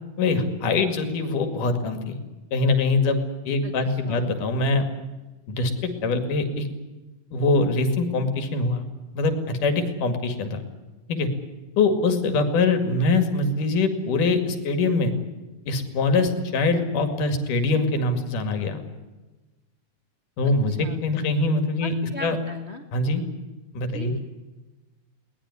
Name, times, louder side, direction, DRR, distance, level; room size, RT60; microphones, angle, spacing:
voice 1, 0.2-2.2 2.5-3.2 3.5-4.9 5.5-6.7 7.3-8.9 9.2-10.6 11.1-11.3 11.8-15.1 15.7-18.8 20.4-21.9 22.2-22.4 22.9-23.2 23.7-24.1, left 3 dB, 80° left, 8 dB, 3.9 m, -23 dB
voice 2, 3.6-4.5 20.4-21.0 21.8-22.9 23.9-24.2, left 2 dB, 40° left, 6 dB, 0.9 m, -38 dB
22.0 x 19.0 x 9.9 m, 1.2 s
omnidirectional pair, 3.6 m